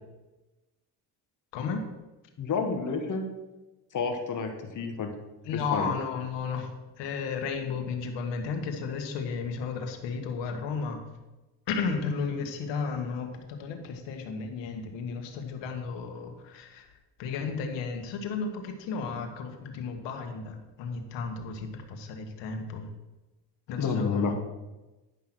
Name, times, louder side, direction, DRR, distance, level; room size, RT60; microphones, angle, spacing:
voice 1, 1.5-1.9 5.4-6.7 7.0-11.1 11.7-16.9 17.2-22.9 23.7-24.3, left 5 dB, 90° left, 5 dB, 1.7 m, -33 dB
voice 2, 2.4-3.3 3.9-5.1 5.5-5.9 23.8-24.3, left 4 dB, 45° left, 5 dB, 1.4 m, -29 dB
11.0 x 5.8 x 6.2 m, 1.1 s
cardioid pair, 105°, 42 cm